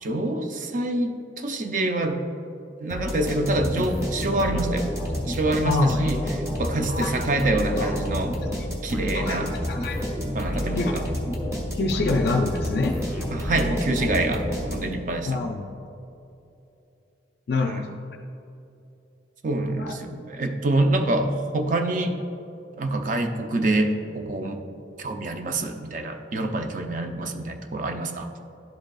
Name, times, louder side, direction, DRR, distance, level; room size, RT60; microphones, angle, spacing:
voice 1, 0.0-2.2 2.8-4.9 5.3-6.2 6.5-8.4 8.8-9.5 10.3-11.0 13.3-15.4 17.6-17.9 19.4-22.2 22.8-24.6 25.0-28.3, right 2 dB, 40° right, 5 dB, 0.5 m, -26 dB
sound 1, 2.9-15.1, equal, 15° right, 1.0 m, -29 dB
voice 2, 5.6-6.1 6.9-7.1 7.8-8.0 9.1-9.4 9.7-10.0 10.8-11.0 11.7-13.0 15.3-15.7 17.5-17.9 19.8-19.9, left 3 dB, 55° left, 3 dB, 0.4 m, -25 dB
11.5 x 5.1 x 2.3 m, 2.8 s
head